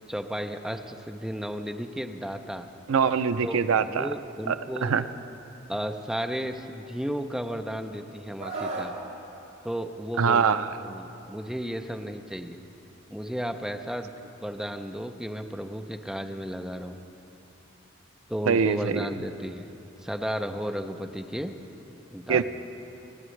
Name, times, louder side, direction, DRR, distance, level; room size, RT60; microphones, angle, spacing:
voice 1, 0.1-2.7 3.4-4.9 5.7-8.9 9.6-12.6 13.1-14.1 14.4-16.9 18.3-19.7 20.0-21.5 22.1-22.4, equal, 5° right, 6 dB, 0.5 m, -34 dB
voice 2, 2.9-4.1 4.5-4.6 4.8-5.0 10.2-10.7 18.5-19.0 22.3-22.4, right 6 dB, 75° right, 12 dB, 0.5 m, -23 dB
Screaming, 8.4-9.0 10.4-10.7, right 3 dB, 60° right, 1.9 m, -34 dB
28.0 x 9.8 x 3.2 m, 3.0 s
head